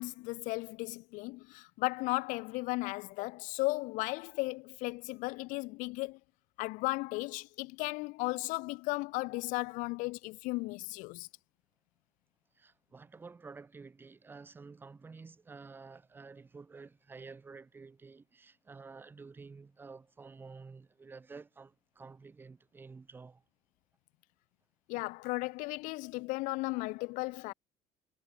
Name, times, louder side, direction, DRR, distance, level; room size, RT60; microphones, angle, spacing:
voice 1, 0.0-6.2 6.6-11.3 24.9-27.5, left 24 dB, 70° left, 2.9 m, -35 dB
voice 2, 12.5-23.4, right 4 dB, 15° right, 5.8 m, -51 dB
cardioid pair, 170°, 14 cm